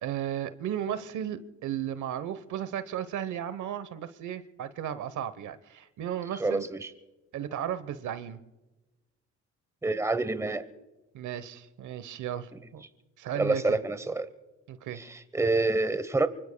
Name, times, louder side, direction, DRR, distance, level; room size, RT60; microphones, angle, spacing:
voice 1, 0.0-6.7 7.3-8.4 11.1-12.8 13.2-13.8 14.7-15.0, right 10 dB, 75° right, 1.1 m, -35 dB
voice 2, 6.4-6.9 9.8-10.7 13.3-14.3 15.0-16.3, right 2 dB, 10° right, 1.0 m, -27 dB
26.0 x 24.5 x 2.3 m
cardioid pair, 90°, 30 cm